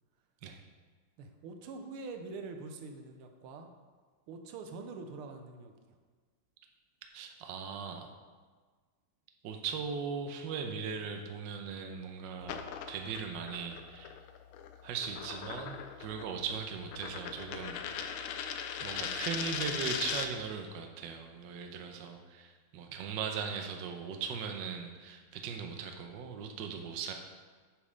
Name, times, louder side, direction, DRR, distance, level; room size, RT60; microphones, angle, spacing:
voice 1, 1.2-3.7 4.3-5.7 22.9-23.0, right 3 dB, 90° right, 5 dB, 1.6 m, -45 dB
voice 2, 7.1-8.1 9.4-12.6 12.9-14.1 14.8-18.2 18.8-27.1, right 6 dB, 65° right, 4 dB, 1.3 m, -39 dB
sound 1, 12.4-20.5, left 8 dB, 80° left, 1.4 m, -39 dB
8.2 x 5.3 x 5.0 m, 1.5 s
omnidirectional pair, 2.3 m